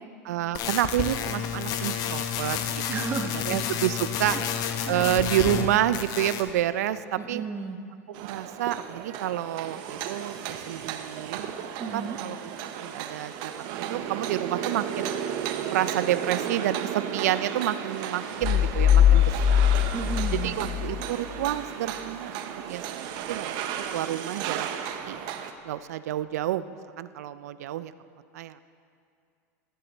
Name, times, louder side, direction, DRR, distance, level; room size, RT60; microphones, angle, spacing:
voice 1, 0.3-2.8 3.5-4.4 4.9-7.4 8.2-11.5 11.9-12.4 12.6-15.1 15.7-19.7 20.3-22.4 22.6-25.2 25.6-27.9 28.3-28.6, right 12 dB, 80° right, 15 dB, 0.4 m, -29 dB
sound 1, 0.5-5.7 5.9-6.5, left 8 dB, 50° left, 0.8 m, -30 dB
voice 2, 2.9-3.6 4.3-4.4 4.8-5.1 7.2-7.8 11.8-12.2 19.9-20.6, right 5 dB, 25° right, 7 dB, 0.9 m, -34 dB
sound 2, 8.1-25.5, right 9 dB, 55° right, 0.7 m, -34 dB
sound 3, 18.4-21.0, left 9 dB, 30° left, 0.3 m, -21 dB
15.0 x 7.7 x 4.1 m, 2.3 s
supercardioid pair, 110°, 8 cm